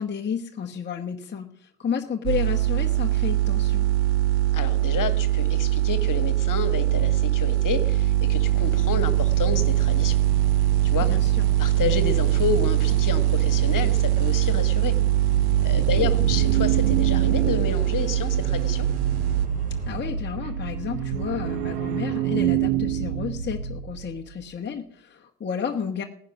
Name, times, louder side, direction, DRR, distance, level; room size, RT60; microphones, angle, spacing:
voice 1, 0.0-3.9 11.0-11.5 15.9-16.3 19.9-26.0, left 7 dB, 20° left, 1 dB, 1.2 m, -32 dB
sound 1, 2.3-19.5, right 14 dB, 55° right, 0.9 m, -22 dB
voice 2, 4.5-10.2 10.8-11.1 11.6-15.0 15.6-18.9, left 7 dB, 40° left, 12 dB, 1.7 m, -30 dB
sound 2, 8.4-20.0, equal, 15° right, 3.5 m, -43 dB
sound 3, 14.9-24.2, right 9 dB, 85° right, 0.9 m, -28 dB
17.0 x 10.0 x 6.0 m, 0.68 s
figure-of-eight pair, 60°, 47 cm